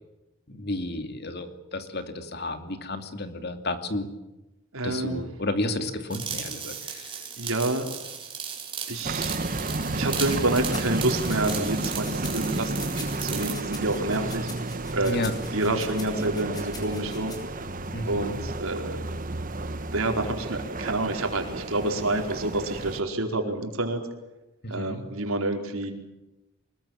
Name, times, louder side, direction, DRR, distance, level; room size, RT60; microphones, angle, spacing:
voice 1, 0.5-4.1 4.8-7.1 15.0-15.4 17.9-18.4 24.6-25.0, left 2 dB, 50° left, 8 dB, 2.8 m, -32 dB
voice 2, 4.7-5.3 7.4-7.9 8.9-9.4 9.9-14.5 14.9-15.2 15.5-17.3 18.0-19.0 19.9-24.0 24.7-25.9, right 2 dB, 80° right, 4 dB, 4.7 m, -28 dB
sound 1, 6.1-13.6, right 7 dB, 25° right, 5.5 m, -36 dB
sound 2, 9.0-23.0, right 2 dB, 40° right, 1.2 m, -32 dB
sound 3, 10.5-17.4, left 3 dB, 20° left, 6.4 m, -44 dB
24.5 x 21.5 x 9.0 m, 0.98 s
head